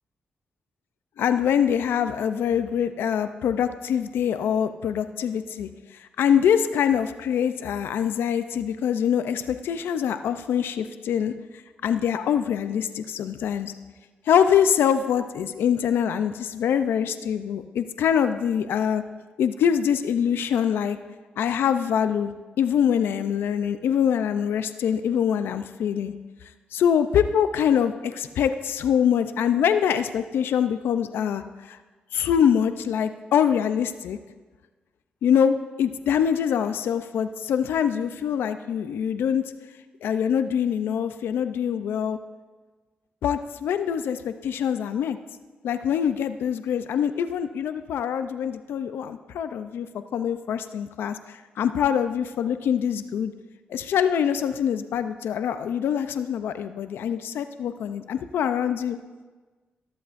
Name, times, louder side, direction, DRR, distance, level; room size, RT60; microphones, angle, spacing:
voice 1, 1.2-5.7 6.2-11.3 11.8-13.7 14.3-19.0 19.4-21.0 21.4-22.3 22.6-26.1 26.7-31.8 32.1-34.2 35.2-39.4 40.0-42.2 43.2-45.2 45.6-49.9 50.1-53.3 53.7-59.0, left 8 dB, 85° left, 10 dB, 0.5 m, -24 dB
14.5 x 13.5 x 2.6 m, 1.3 s
cardioid pair, 60°, 4 cm